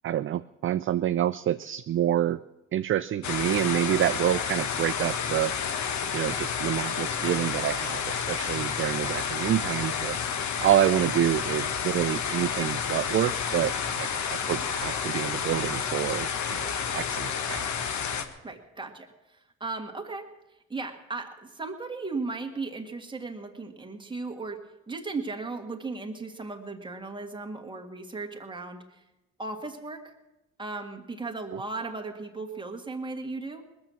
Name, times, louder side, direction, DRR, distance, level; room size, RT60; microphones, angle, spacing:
voice 1, 0.0-2.4 2.7-5.5 6.1-10.2 10.6-17.9, right 11 dB, 45° right, 13 dB, 0.4 m, -27 dB
sound 1, 3.2-18.2, left 7 dB, 70° left, 1.2 m, -30 dB
voice 2, 18.4-20.3 20.7-24.6 24.9-28.8 29.4-30.1 30.6-33.9, right 3 dB, 15° right, 3 dB, 1.9 m, -36 dB
20.0 x 7.1 x 7.5 m, 0.96 s
cardioid pair, 90°, 30 cm